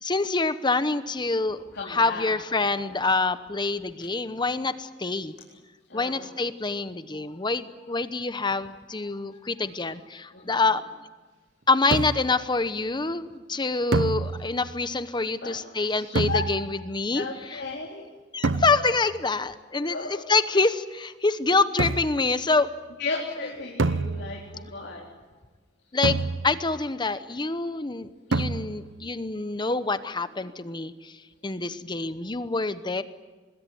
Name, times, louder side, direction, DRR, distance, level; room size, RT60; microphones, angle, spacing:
voice 1, 0.0-5.3 5.9-10.8 11.7-17.6 18.3-22.7 25.9-26.2 26.4-31.1 31.4-33.0, left 3 dB, 25° left, 12 dB, 0.9 m, -26 dB
voice 2, 1.7-2.7 5.9-6.3 10.3-10.6 15.4-16.4 17.1-18.1 19.8-20.3 23.0-25.0, left 3 dB, 65° left, -2 dB, 4.0 m, -35 dB
sound 1, 11.9-12.5 13.9-14.8 16.1-16.9 18.4-19.1 21.8-22.3 23.8-24.7 26.0-26.8 28.3-29.0, right 3 dB, 85° right, 0.8 m, -28 dB
25.0 x 21.0 x 9.4 m, 1.3 s
head